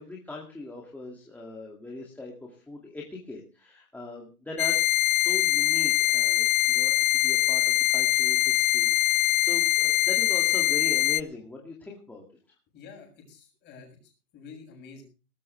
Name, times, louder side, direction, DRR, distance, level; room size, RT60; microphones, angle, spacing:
voice 1, 0.0-12.2, left 2 dB, 5° left, -3 dB, 2.3 m, -40 dB
sound 1, 4.6-11.2, left 14 dB, 60° left, 0.7 m, -23 dB
voice 2, 12.7-15.0, left 5 dB, 20° left, 2 dB, 7.4 m, -48 dB
19.0 x 14.0 x 3.3 m, 0.34 s
hypercardioid pair, 155°, 47 cm